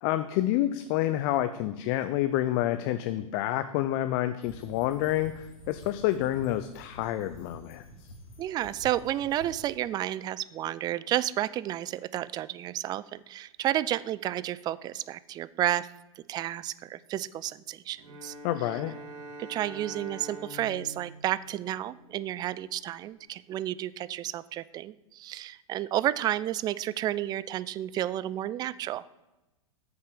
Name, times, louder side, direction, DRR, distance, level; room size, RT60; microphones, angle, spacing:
voice 1, 0.0-8.1 18.4-18.9, left 13 dB, 45° left, 10 dB, 0.6 m, -28 dB
sound 1, 4.4-9.8, right 1 dB, 70° left, 3.1 m, -49 dB
voice 2, 8.4-15.9 16.3-18.3 19.4-29.0, right 13 dB, 25° right, 18 dB, 0.3 m, -31 dB
Bowed string instrument, 17.9-22.4, right 1 dB, 70° right, 2.2 m, -44 dB
8.6 x 7.0 x 6.8 m, 1.0 s
hypercardioid pair, 115°, 18 cm